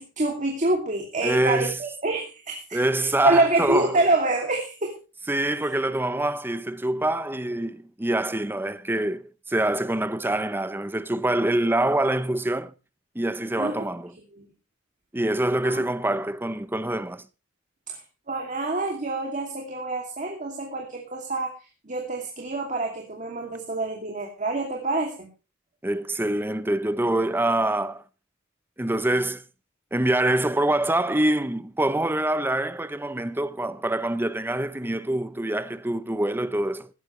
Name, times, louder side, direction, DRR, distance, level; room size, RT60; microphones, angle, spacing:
voice 1, 0.0-5.0 13.6-13.9 14.3-14.4 15.6-15.8 17.9-18.0 18.3-21.5 21.8-25.3, right 2 dB, 40° right, 2.7 m, -27 dB
voice 2, 1.2-1.8 2.7-4.0 5.3-12.7 13.1-14.1 15.1-17.2 25.8-28.0 28.8-29.4 29.9-36.9, right 1 dB, 10° right, 0.7 m, -25 dB
17.0 x 13.0 x 3.2 m
head